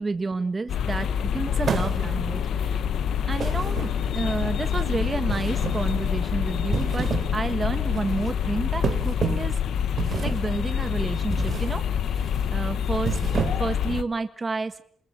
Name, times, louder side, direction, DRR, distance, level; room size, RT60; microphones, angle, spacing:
voice 1, 0.0-2.8 3.3-9.6 10.2-14.8, right 3 dB, 25° right, 9 dB, 1.6 m, -30 dB
sound 1, 0.7-14.0, left 8 dB, 80° left, 1.3 m, -26 dB
sound 2, 1.6-2.3 3.4-4.3 5.3-6.0 6.6-7.4 7.7-8.0 8.8-9.6 10.0-10.5 11.3-11.8 12.1-12.4 12.9-13.8, right 6 dB, 45° right, 3.6 m, -29 dB
28.0 x 20.5 x 9.0 m, 0.63 s
wide cardioid pair, 135°, 0 cm